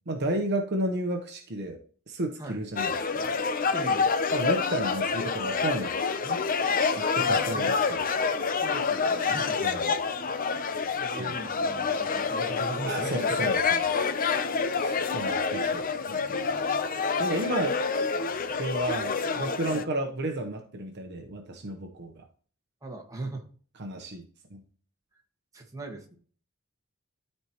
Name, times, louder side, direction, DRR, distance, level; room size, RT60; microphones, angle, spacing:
voice 1, 0.1-1.8 2.1-3.4 4.3-6.0 6.2-6.4 6.9-8.0 9.6-9.9 11.2-11.3 12.9-13.8 14.8-16.4 17.2-17.8 18.6-22.2 23.8-24.2 24.5-24.6, right 1 dB, 55° right, 4 dB, 1.0 m, -32 dB
sound 1, 2.8-19.8, left 5 dB, 45° left, 0.6 m, -27 dB
voice 2, 3.7-4.2 7.2-7.8 8.5-9.9 11.0-13.5 19.6-19.9 22.8-23.4 25.5-26.2, right 2 dB, 15° right, 1 dB, 1.6 m, -39 dB
12.5 x 4.4 x 3.0 m, 0.43 s
head